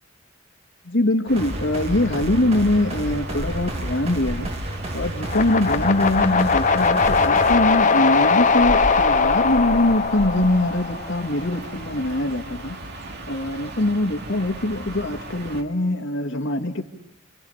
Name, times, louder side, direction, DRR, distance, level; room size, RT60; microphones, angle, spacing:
voice 1, 0.8-4.5 4.9-12.8 13.3-16.8, left 1 dB, 65° left, 5 dB, 2.3 m, -23 dB
sound 1, 1.3-15.6, right 1 dB, 60° right, 2.7 m, -35 dB
sound 2, 1.4-7.6, right 1 dB, 35° right, 2.3 m, -31 dB
sound 3, 5.3-11.4, left 4 dB, 40° left, 1.0 m, -20 dB
29.0 x 26.5 x 5.8 m, 0.77 s
head